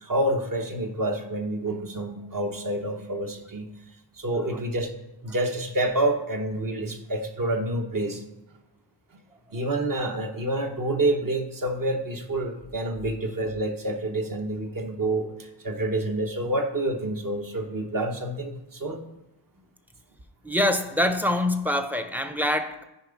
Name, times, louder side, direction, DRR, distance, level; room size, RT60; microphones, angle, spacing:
voice 1, 0.0-3.7 4.2-4.9 5.2-8.2 9.5-19.0, right 1 dB, 45° right, 3 dB, 1.0 m, -28 dB
voice 2, 20.4-22.8, left 1 dB, 5° right, 8 dB, 0.5 m, -25 dB
10.5 x 5.0 x 5.1 m, 0.97 s
wide cardioid pair, 160°, 45 cm